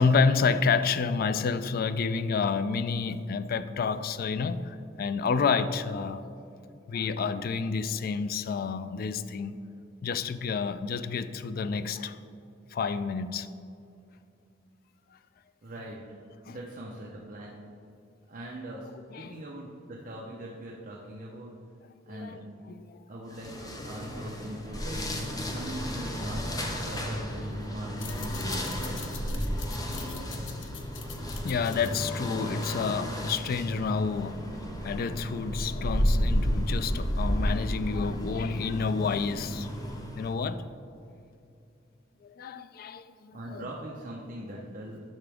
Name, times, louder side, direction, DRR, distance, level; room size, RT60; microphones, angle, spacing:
voice 1, 0.0-6.3 6.9-9.5 10.0-12.2 12.7-13.5 16.5-16.6 19.1-19.3 22.1-22.4 22.7-23.0 25.5-25.6 31.4-34.5 34.8-39.7 40.2-40.6 42.2-43.7, left 5 dB, 50° left, 0.3 m, -29 dB
voice 2, 15.6-16.0 16.4-17.5 18.3-18.9 19.2-21.5 22.1-22.4 23.1-25.0 25.5-29.5 43.3-45.0, right 1 dB, 45° right, 0.7 m, -41 dB
sound 1, 23.3-40.4, equal, 20° left, 0.8 m, -32 dB
sound 2, 28.0-33.0, left 8 dB, 75° left, 0.7 m, -45 dB
10.5 x 5.9 x 3.5 m
head